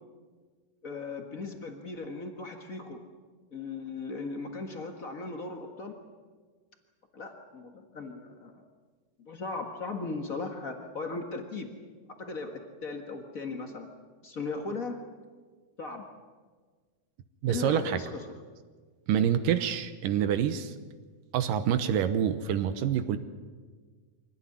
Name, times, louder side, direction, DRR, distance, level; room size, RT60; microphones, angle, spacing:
voice 1, 0.8-3.0 3.5-6.0 7.1-8.6 9.2-11.7 12.1-13.9 14.2-15.0 15.8-16.1 17.5-18.2, left 3 dB, 85° left, 4 dB, 0.7 m, -37 dB
voice 2, 17.4-18.0 19.1-20.7 21.3-23.2, right 9 dB, 70° right, 11 dB, 2.3 m, -27 dB
25.0 x 17.5 x 9.8 m, 1.5 s
omnidirectional pair, 4.5 m